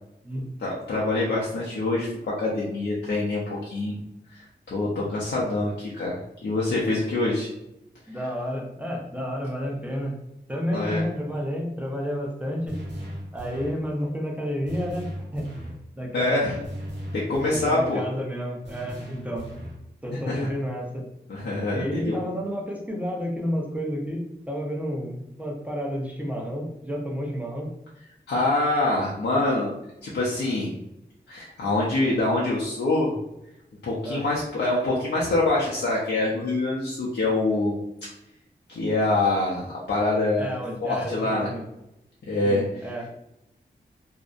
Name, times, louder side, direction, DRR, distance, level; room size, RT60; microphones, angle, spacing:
voice 1, 0.6-4.0 4.3-7.5 10.7-11.0 16.1-16.6 17.1-18.0 20.3-20.5 21.3-22.1 28.3-29.7 30.0-30.7 31.3-33.1 33.8-37.8 38.7-40.5 40.8-41.5 42.2-42.6, left 2 dB, 85° left, -6 dB, 0.5 m, -25 dB
voice 2, 8.1-10.2 10.5-12.8 13.3-15.5 16.0-16.5 17.5-19.5 20.0-21.0 21.7-27.7 34.0-34.3 40.4-41.6 42.4-43.1, equal, 10° right, -1 dB, 0.6 m, -31 dB
sound 1, 12.7-13.9 14.7-15.8 16.6-17.9 18.7-19.9, equal, 80° right, 0.7 m, -37 dB
2.6 x 2.0 x 2.4 m, 0.85 s
cardioid pair, 50°, 18 cm